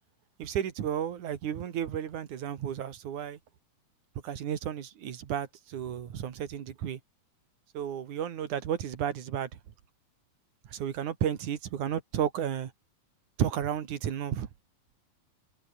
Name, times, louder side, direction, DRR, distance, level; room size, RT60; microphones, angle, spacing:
voice 1, 0.4-3.4 4.2-7.0 7.7-9.5 10.7-12.7 13.4-14.5, right 9 dB, 60° right, 3.1 m, -32 dB
omnidirectional pair, 4.4 m